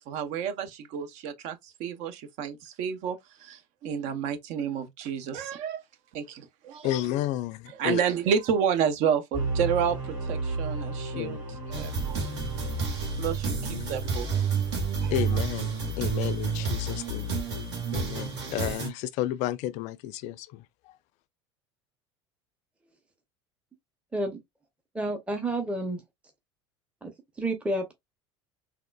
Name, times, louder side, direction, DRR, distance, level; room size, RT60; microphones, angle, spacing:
voice 1, 0.1-5.8 6.1-7.0 7.7-11.4 11.7-12.3 13.2-14.4 15.0-15.2, right 7 dB, 55° right, 0.6 m, -30 dB
voice 2, 6.8-8.0 11.1-11.4 13.6-13.9 15.1-17.3 17.9-20.5, left 13 dB, 55° left, 0.4 m, -32 dB
sound 1, 9.3-13.3, right 3 dB, 30° right, 2.2 m, -33 dB
sound 2, 11.7-18.9, right 4 dB, 70° right, 1.4 m, -30 dB
voice 3, 24.9-26.0 27.0-27.1 27.4-27.9, right 1 dB, 10° right, 0.7 m, -30 dB
3.5 x 2.3 x 2.2 m
hypercardioid pair, 75°, 15 cm